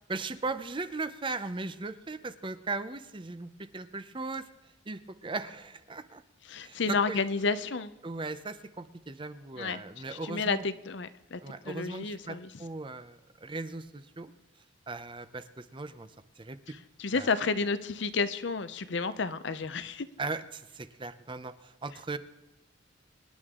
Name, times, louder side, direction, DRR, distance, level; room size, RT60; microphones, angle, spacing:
voice 1, 0.1-4.5 4.9-6.2 6.6-7.2 8.0-10.6 11.4-14.3 14.9-16.6 17.1-17.3 20.2-22.2, right 3 dB, 25° right, 12 dB, 0.6 m, -38 dB
voice 2, 6.5-7.9 9.6-9.8 10.1-11.4 11.7-12.5 17.0-20.1, left 4 dB, 60° left, 13 dB, 0.7 m, -31 dB
24.5 x 10.5 x 3.7 m, 1.0 s
head